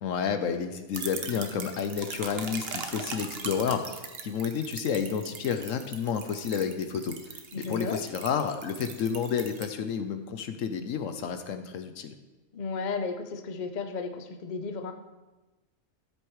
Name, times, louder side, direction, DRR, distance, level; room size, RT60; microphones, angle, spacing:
voice 1, 0.0-7.2 7.5-12.1, left 7 dB, 70° left, 8 dB, 1.0 m, -30 dB
sound 1, 0.9-9.7, right 5 dB, 50° right, 1.0 m, -40 dB
voice 2, 7.5-8.0 12.5-14.9, left 4 dB, 45° left, 6 dB, 0.7 m, -34 dB
13.0 x 7.8 x 3.1 m, 1.1 s
omnidirectional pair, 1.4 m